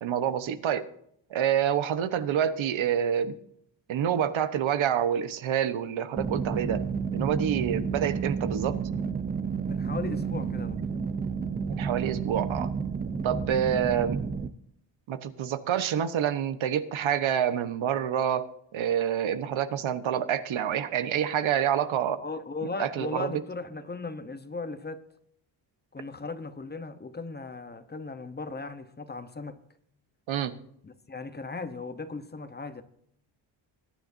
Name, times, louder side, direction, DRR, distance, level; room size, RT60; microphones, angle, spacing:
voice 1, 0.0-0.9 1.3-3.3 3.9-6.8 7.1-8.8 11.7-12.7 13.2-14.2 15.1-22.2 22.8-23.4 30.3-30.5, right 9 dB, 85° right, 1.2 m, -27 dB
sound 1, 6.2-14.5, right 5 dB, 20° right, 0.6 m, -31 dB
voice 2, 9.7-10.8 22.2-25.1 25.9-29.6 30.8-32.8, left 3 dB, 20° left, 0.9 m, -37 dB
21.5 x 10.5 x 2.7 m
wide cardioid pair, 140°, 46 cm